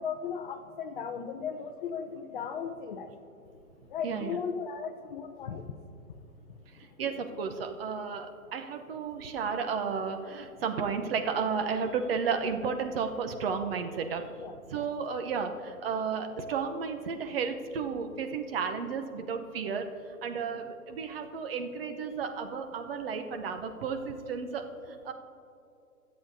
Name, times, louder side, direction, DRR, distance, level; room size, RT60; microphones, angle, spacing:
voice 1, 0.0-3.1 3.9-5.6 14.4-14.5 20.5-20.6, left 6 dB, 35° left, 8 dB, 0.6 m, -36 dB
voice 2, 4.0-4.4 6.8-14.3 14.7-19.9 20.2-25.1, right 5 dB, 45° right, 6 dB, 0.8 m, -33 dB
23.0 x 7.9 x 2.7 m, 2.6 s
hypercardioid pair, 135°, 43 cm